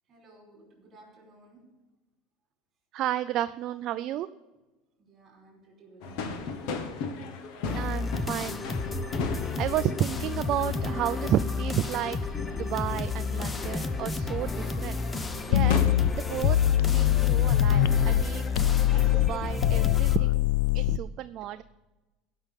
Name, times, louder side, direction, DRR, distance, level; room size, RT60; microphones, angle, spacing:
voice 1, 0.1-1.8 5.0-6.8, right 2 dB, 25° right, -1 dB, 4.8 m, -55 dB
voice 2, 2.9-4.3 7.7-8.6 9.6-12.2 12.6-15.8 16.1-16.6 16.9-20.5 20.7-21.6, right 12 dB, 40° right, 11 dB, 0.3 m, -32 dB
sound 1, 6.0-19.6, left 4 dB, 60° left, 1.4 m, -38 dB
sound 2, 7.6-20.2, left 4 dB, 15° left, 0.6 m, -32 dB
sound 3, 15.5-18.2 18.6-21.0, left 12 dB, 80° left, 0.3 m, -23 dB
17.0 x 5.9 x 5.2 m, 1.1 s
cardioid pair, 160°, 0 cm